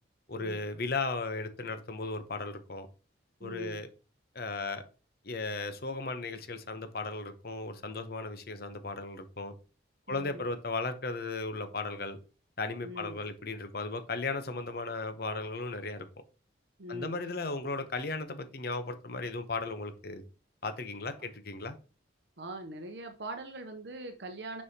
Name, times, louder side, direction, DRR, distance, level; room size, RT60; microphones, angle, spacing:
voice 1, 0.3-2.9 3.4-3.9 4.3-4.9 5.2-9.5 10.1-12.2 12.6-16.1 16.9-20.2 20.6-21.8, left 3 dB, 55° left, 9 dB, 0.8 m, -36 dB
voice 2, 3.4-3.8 10.1-10.5 12.8-13.2 16.8-17.3 21.2-21.3 22.4-24.6, right 1 dB, 60° right, 6 dB, 0.7 m, -42 dB
6.7 x 5.4 x 2.8 m, 0.34 s
head